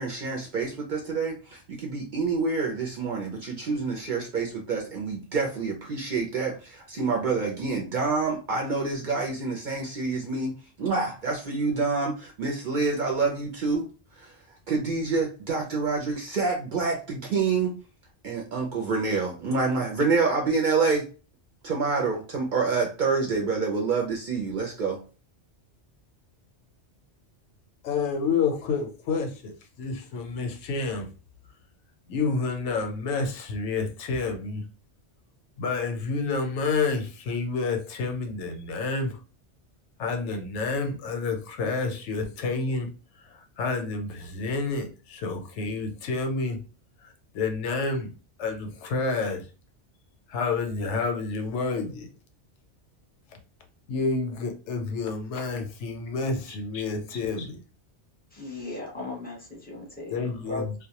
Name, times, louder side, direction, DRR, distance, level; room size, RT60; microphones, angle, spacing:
voice 1, 0.0-13.9 14.1-14.3 14.7-17.8 18.2-21.0 21.6-25.0, right 4 dB, 55° right, 0.6 m, -27 dB
voice 2, 27.8-31.1 32.1-34.6 35.6-39.2 40.0-42.9 43.3-46.6 47.0-48.1 48.4-49.4 50.3-52.1 53.9-57.6 60.1-60.7, left 4 dB, 80° left, 0.9 m, -29 dB
voice 3, 58.3-60.6, left 2 dB, 10° left, 0.7 m, -37 dB
2.1 x 2.1 x 2.8 m
omnidirectional pair, 1.2 m